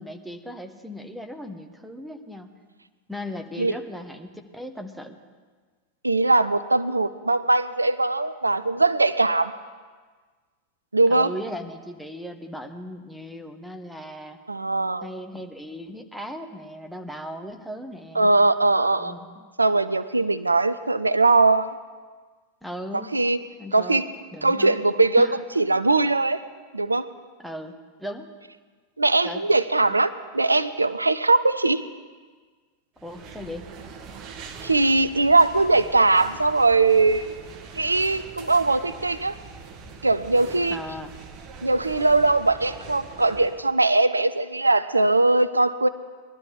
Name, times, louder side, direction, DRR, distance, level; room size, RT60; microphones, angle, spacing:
voice 1, 0.0-2.5 3.1-5.2 11.1-14.4 15.0-18.3 19.0-19.4 22.6-23.1 23.6-24.0 24.3-24.8 25.2-25.4 27.4-27.7 28.0-28.3 29.2-29.4 33.0-33.7 40.7-41.1, equal, ahead, 5 dB, 1.2 m, -37 dB
voice 2, 6.0-9.5 10.9-11.3 14.5-15.1 18.2-19.2 19.6-21.7 23.1-23.4 23.7-24.1 24.4-25.3 25.6-26.4 26.7-27.1 29.0-31.8 34.6-37.4 37.8-39.3 40.0-40.8 41.6-45.9, right 3 dB, 80° right, 14 dB, 0.4 m, -20 dB
sound 1, 33.0-43.7, right 5 dB, 40° right, 1.1 m, -43 dB
21.0 x 12.0 x 3.6 m, 1.5 s
figure-of-eight pair, 90°, 0 cm